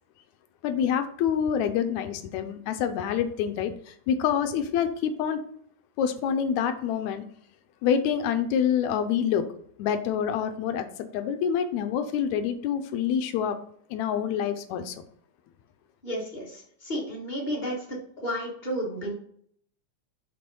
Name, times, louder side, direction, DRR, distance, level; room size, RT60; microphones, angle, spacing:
voice 1, 0.6-5.4 6.0-7.2 7.8-9.5 9.8-13.6 13.9-15.0, left 8 dB, 80° left, 8 dB, 1.9 m, -27 dB
voice 2, 16.0-18.0 18.2-19.1, equal, 30° left, -3 dB, 0.8 m, -32 dB
5.8 x 3.4 x 5.3 m, 0.63 s
omnidirectional pair, 3.4 m